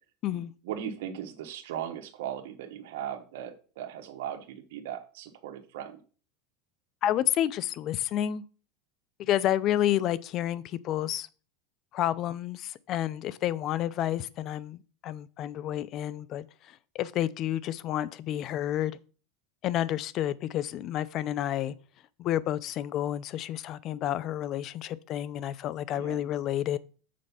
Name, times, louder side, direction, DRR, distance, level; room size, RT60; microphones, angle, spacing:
voice 1, 0.6-6.0 25.9-26.2, right 9 dB, 75° right, 1.1 m, -38 dB
voice 2, 7.0-8.4 9.2-11.3 11.9-16.4 16.9-19.0 19.6-21.7 22.2-26.8, left 12 dB, 40° left, 0.5 m, -30 dB
7.6 x 4.5 x 5.6 m
supercardioid pair, 145°, 0 cm